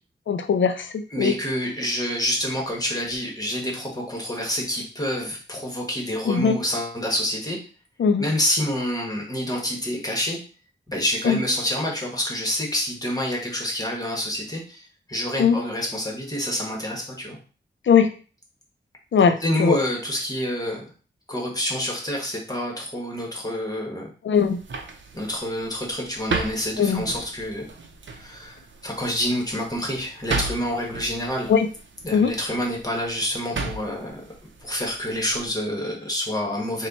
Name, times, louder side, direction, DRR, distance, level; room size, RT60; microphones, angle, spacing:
voice 1, 0.3-1.3 6.3-6.6 8.0-8.3 11.2-11.4 15.4-15.6 17.9-18.1 19.1-19.8 24.2-24.6 26.8-27.0 31.5-31.7 32.1-32.3, left 6 dB, 75° left, 8 dB, 0.4 m, -19 dB
voice 2, 1.1-7.6 8.2-10.4 10.9-14.8 15.1-17.4 19.4-20.8 21.3-24.1 25.1-27.7 28.1-31.5 32.0-34.2 34.6-36.9, left 1 dB, 20° left, -1 dB, 1.3 m, -27 dB
sound 1, 24.3-35.5, right 3 dB, 75° right, 0.6 m, -35 dB
4.2 x 2.3 x 4.0 m, 0.37 s
wide cardioid pair, 105°, 20 cm